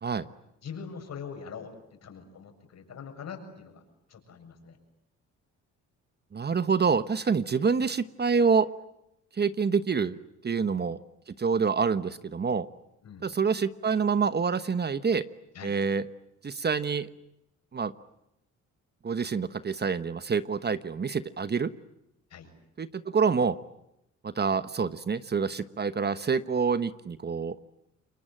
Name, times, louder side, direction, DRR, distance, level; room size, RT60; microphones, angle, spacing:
voice 1, 0.6-3.8 4.1-4.8 10.6-10.7 13.0-13.3 15.5-15.8 22.3-22.5, left 6 dB, 60° left, 5 dB, 7.3 m, -43 dB
voice 2, 6.3-8.7 9.4-10.2 10.4-11.0 11.4-12.7 13.2-15.2 15.6-16.0 16.4-17.1 17.7-17.9 19.0-21.7 22.8-23.6 24.2-27.6, right 5 dB, 35° right, 13 dB, 1.2 m, -27 dB
29.0 x 23.0 x 8.9 m, 0.84 s
cardioid pair, 90°, 30 cm